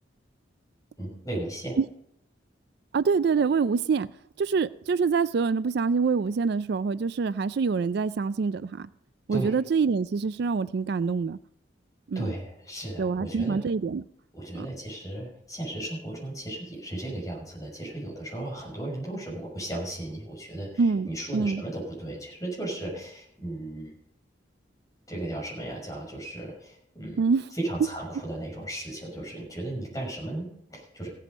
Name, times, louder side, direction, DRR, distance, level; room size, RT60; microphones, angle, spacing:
voice 1, 1.0-1.8 9.3-9.6 12.1-13.6 14.3-23.9 25.1-27.2 27.6-31.1, right 1 dB, 20° left, -3 dB, 6.0 m, -35 dB
voice 2, 2.9-4.1 4.4-8.9 9.3-11.4 12.1-12.3 13.0-14.0 14.5-14.7 20.8-21.6 27.2-27.5, right 5 dB, 60° right, 16 dB, 0.4 m, -25 dB
16.5 x 8.3 x 5.2 m, 0.74 s
head